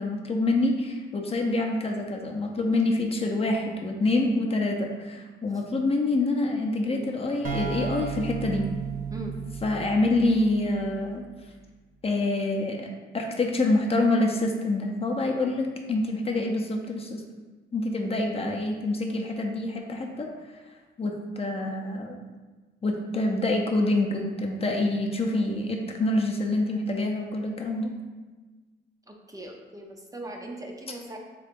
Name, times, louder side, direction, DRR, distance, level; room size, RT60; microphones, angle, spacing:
voice 1, 0.0-8.7 9.6-11.2 12.0-12.9 13.1-17.2 17.7-20.3 21.0-22.2 22.8-27.9, left 2 dB, 30° left, 1 dB, 0.6 m, -26 dB
sound 1, 7.4-11.1, right 6 dB, 45° right, 0.9 m, -34 dB
voice 2, 29.1-31.2, right 2 dB, 15° right, 1 dB, 0.5 m, -39 dB
3.8 x 3.3 x 3.6 m, 1.3 s
cardioid pair, 90°, 20 cm